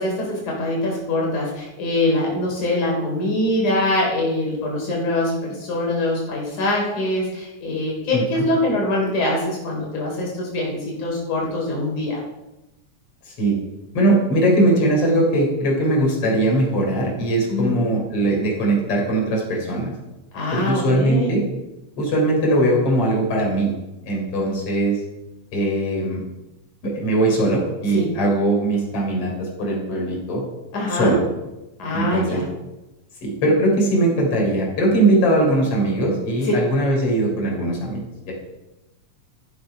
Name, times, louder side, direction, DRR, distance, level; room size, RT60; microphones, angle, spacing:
voice 1, 0.0-12.2 17.5-17.8 20.3-21.3 27.9-28.0 30.7-31.1 31.8-32.4, left 1 dB, 80° left, -2 dB, 4.9 m, -23 dB
voice 2, 8.1-8.4 13.2-13.6 13.9-19.9 20.5-21.4 22.0-23.7 24.0-25.0 25.5-26.2 26.8-30.4 30.9-31.2 31.9-32.4 33.2-38.3, right 1 dB, 50° left, -1 dB, 4.8 m, -20 dB
13.5 x 11.5 x 5.6 m, 0.99 s
omnidirectional pair, 3.4 m